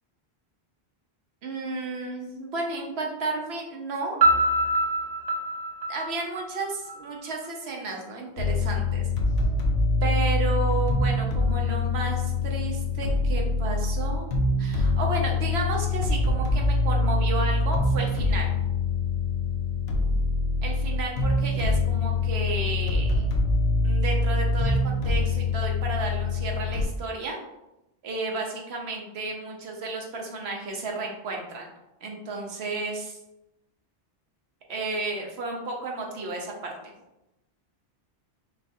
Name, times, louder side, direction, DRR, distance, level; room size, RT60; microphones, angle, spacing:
voice 1, 1.4-4.2 5.9-9.0 10.0-14.3 14.6-18.5 20.6-23.3 23.8-27.4 28.0-31.7 32.0-33.2 34.7-36.9, right 3 dB, 75° right, 0 dB, 1.1 m, -32 dB
Piano, 4.2-7.0, right 1 dB, 45° right, 0.7 m, -24 dB
sound 1, 8.4-26.8, left 3 dB, 75° left, 0.9 m, -24 dB
5.7 x 2.4 x 2.6 m, 0.94 s
omnidirectional pair, 1.1 m